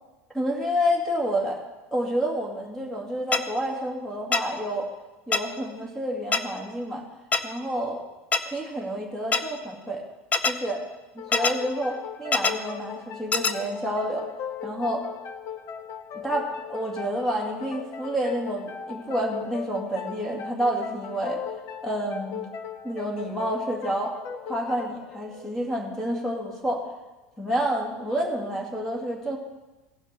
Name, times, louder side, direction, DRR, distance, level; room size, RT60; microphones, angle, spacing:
voice 1, 0.3-1.6 1.9-4.9 5.3-7.0 7.4-8.0 8.4-10.0 10.5-10.8 11.3-14.3 14.6-15.1 16.1-21.4 21.8-22.4 22.8-24.1 24.4-26.8 27.4-29.4, equal, 5° left, -1 dB, 2.3 m, -29 dB
sound 1, 3.3-3.4 4.3-4.4 5.3-5.4 6.3-6.4 7.3-7.4 8.3-8.4 9.3-9.4 10.3-10.5 11.3-11.5 12.3-12.5 13.3-13.5, left 4 dB, 20° left, 0.6 m, -22 dB
sound 2, 11.2-26.5, left 7 dB, 45° left, 0.9 m, -38 dB
17.0 x 5.8 x 4.4 m, 1.1 s
supercardioid pair, 135°, 6 cm